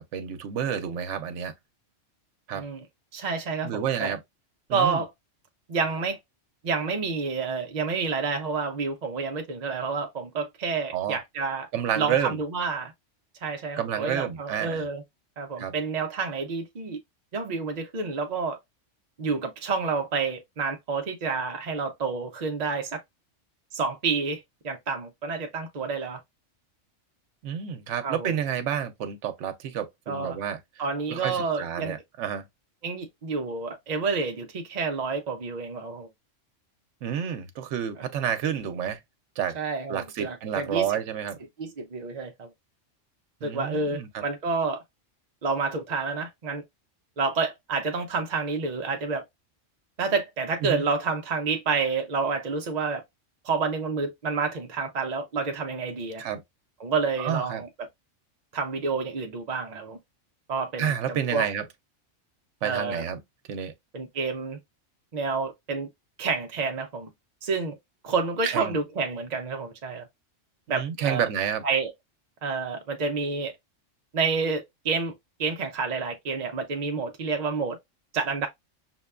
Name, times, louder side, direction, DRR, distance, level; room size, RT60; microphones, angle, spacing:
voice 1, 0.0-1.5 2.5-2.6 3.6-4.2 4.7-5.0 10.9-11.2 11.7-12.4 13.8-14.8 15.6-15.7 27.4-30.6 31.1-32.4 37.0-39.0 39.4-39.6 39.9-41.4 43.4-44.2 50.6-50.8 56.2-56.4 57.2-57.6 60.8-61.6 62.6-63.2 63.5-63.7 68.4-68.8 70.7-71.6, right 8 dB, 75° right, 1.0 m, -29 dB
voice 2, 3.1-4.1 4.7-5.1 5.7-6.2 6.6-11.7 12.0-12.9 13.4-15.0 15.4-17.0 17.3-18.6 19.2-23.0 23.7-26.2 28.0-28.3 30.1-30.4 30.8-32.0 32.8-36.1 39.5-40.9 41.6-42.5 43.4-44.8 45.4-46.6 47.2-49.2 50.0-53.0 53.4-56.2 56.8-57.9 58.5-60.0 60.5-61.5 62.6-63.0 63.9-64.6 65.1-65.9 66.2-67.1 67.4-67.8 68.0-70.1 70.7-71.3 71.6-71.9 72.4-73.6 74.1-75.1 75.4-77.8 78.1-78.5, right 4 dB, 50° right, 0.5 m, -29 dB
5.9 x 2.2 x 2.3 m
omnidirectional pair, 1.3 m